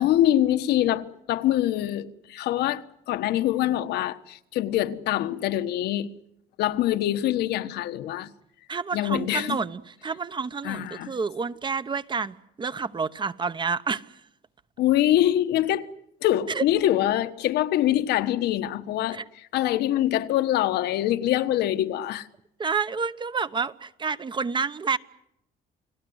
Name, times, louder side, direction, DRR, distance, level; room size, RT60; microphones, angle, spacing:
voice 1, 0.0-6.2 6.6-8.3 8.9-9.6 10.6-11.1 14.8-15.9 16.2-19.2 19.5-22.3, left 13 dB, 80° left, 1.3 m, -24 dB
voice 2, 8.7-14.2 16.5-16.6 19.1-19.2 22.6-25.0, right 5 dB, 30° right, 1.0 m, -29 dB
29.5 x 20.0 x 8.0 m
cardioid pair, 110°, 17 cm